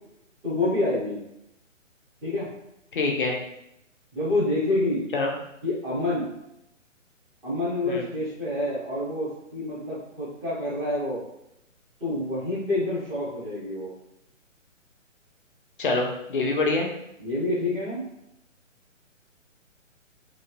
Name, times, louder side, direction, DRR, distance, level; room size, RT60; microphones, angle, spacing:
voice 1, 0.4-1.2 2.2-2.5 4.1-5.1 5.6-6.3 7.4-11.2 12.0-13.9 17.2-18.0, left 2 dB, 5° right, -13 dB, 0.6 m, -27 dB
voice 2, 2.9-3.4 5.1-5.3 7.8-8.0 15.8-16.9, left 3 dB, 45° left, 1 dB, 0.5 m, -25 dB
3.1 x 2.2 x 2.5 m, 0.82 s
figure-of-eight pair, 135°, 39 cm